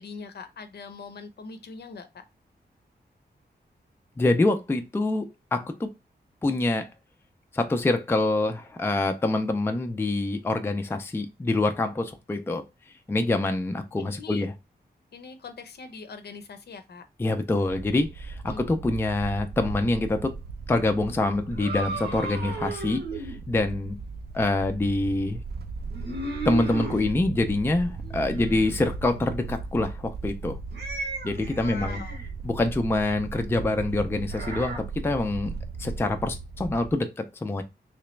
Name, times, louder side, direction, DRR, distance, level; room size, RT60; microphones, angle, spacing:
voice 1, 0.0-2.2 14.0-14.4 15.1-17.0 18.5-18.6 31.6-32.2, left 5 dB, 70° left, 0.6 m, -42 dB
voice 2, 4.2-5.9 6.4-6.9 7.5-12.6 13.1-14.5 17.2-20.3 20.7-24.0 24.3-25.4 26.4-30.6 31.2-32.0 32.4-35.5 35.8-37.6, left 2 dB, 15° left, 0.4 m, -26 dB
sound 1, 17.6-36.9, right 4 dB, 70° right, 0.5 m, -37 dB
sound 2, 21.5-23.4 25.9-27.0 27.9-28.8 30.7-32.3 34.3-34.8, right 2 dB, 85° right, 1.3 m, -35 dB
3.3 x 3.0 x 3.1 m
wide cardioid pair, 155°, 17 cm